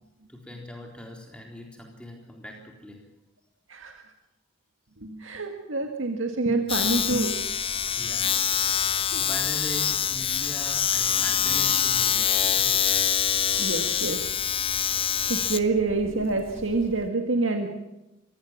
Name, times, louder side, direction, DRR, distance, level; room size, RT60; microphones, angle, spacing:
voice 1, 0.3-3.0 8.0-8.3 8.8-12.7, equal, 5° left, 1 dB, 3.9 m, -41 dB
voice 2, 3.7-4.0 5.0-7.4 8.9-9.2 13.5-14.3 15.3-17.7, right 3 dB, 80° right, 4 dB, 1.9 m, -27 dB
Domestic sounds home sounds, 6.7-17.1, left 9 dB, 25° left, 0.7 m, -25 dB
24.5 x 16.0 x 7.4 m, 0.95 s
head